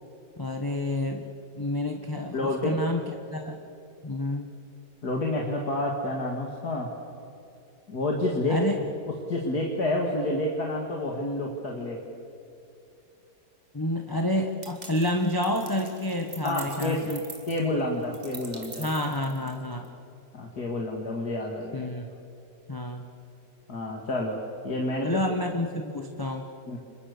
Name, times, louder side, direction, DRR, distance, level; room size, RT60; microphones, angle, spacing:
voice 1, 0.4-3.0 3.3-3.6 4.0-4.5 8.5-8.7 13.7-17.2 18.8-19.9 21.7-22.1 22.7-23.1 25.0-26.5, left 1 dB, 15° left, 3 dB, 1.2 m, -29 dB
voice 2, 2.3-2.8 5.0-6.9 7.9-8.6 9.3-12.0 16.4-17.1 17.5-18.9 20.3-21.9 23.7-24.4 24.6-25.2 26.7-26.8, left 1 dB, 55° left, 0 dB, 2.7 m, -29 dB
sound 1, 14.6-19.9, right 3 dB, 25° right, 1.8 m, -45 dB
30.0 x 27.0 x 6.8 m, 2.7 s
omnidirectional pair, 2.0 m